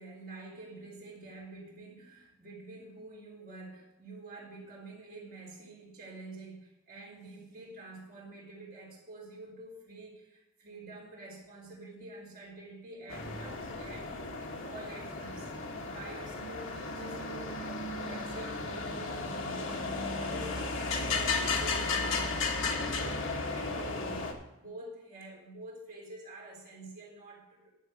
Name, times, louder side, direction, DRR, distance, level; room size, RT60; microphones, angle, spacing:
voice 1, 0.0-14.1 14.4-15.5 15.8-27.7, right 2 dB, 45° right, -3 dB, 3.7 m, -48 dB
sound 1, 13.1-24.3, left 3 dB, 60° left, 1.6 m, -34 dB
11.0 x 7.1 x 6.4 m, 0.91 s
head